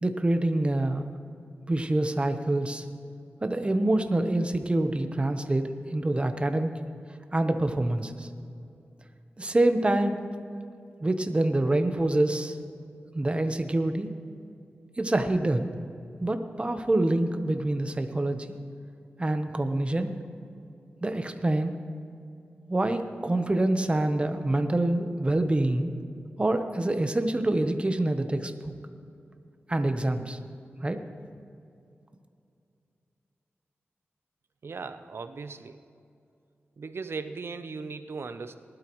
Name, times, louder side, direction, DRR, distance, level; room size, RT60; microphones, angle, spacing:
voice 1, 0.0-1.1 1.7-2.8 3.4-6.8 7.3-8.3 9.4-10.2 11.0-12.6 13.1-14.1 15.0-15.7 16.2-18.5 19.2-20.1 21.0-21.8 22.7-25.9 26.4-28.7 29.7-30.4 30.8-31.0, right 1 dB, 25° right, 7 dB, 1.0 m, -26 dB
voice 2, 34.6-35.8 36.8-38.6, right 4 dB, 65° right, 10 dB, 0.7 m, -37 dB
19.5 x 12.0 x 3.1 m, 2.5 s
wide cardioid pair, 80°, 4 cm